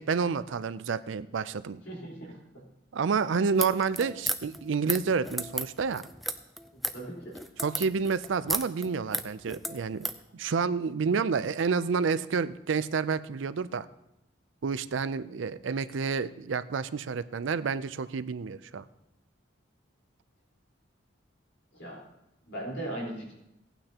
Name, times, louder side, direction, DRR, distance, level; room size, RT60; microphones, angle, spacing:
voice 1, 0.0-1.8 2.9-6.1 7.6-10.1 10.3-13.9 14.6-18.8, right 5 dB, 75° right, 14 dB, 0.4 m, -29 dB
voice 2, 1.9-2.6 6.7-7.4 21.7-22.0 22.5-23.3, right 1 dB, 75° left, -3 dB, 4.1 m, -39 dB
sound 1, 3.5-10.2, equal, ahead, 0.4 m, -34 dB
17.5 x 9.0 x 2.9 m, 0.86 s
head